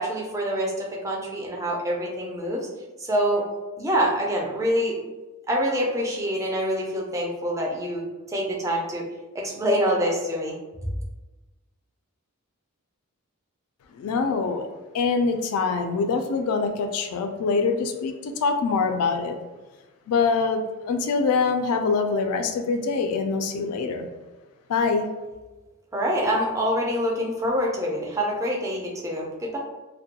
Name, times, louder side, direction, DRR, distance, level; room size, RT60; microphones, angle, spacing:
voice 1, 0.0-2.7 3.0-3.4 3.8-5.0 5.5-9.0 9.3-10.6 25.9-29.6, equal, 15° right, -1 dB, 0.4 m, -26 dB
voice 2, 13.9-14.7 14.9-19.4 20.1-24.1 24.7-25.1, left 4 dB, 80° left, 6 dB, 0.3 m, -24 dB
2.2 x 2.1 x 2.7 m, 1.2 s
head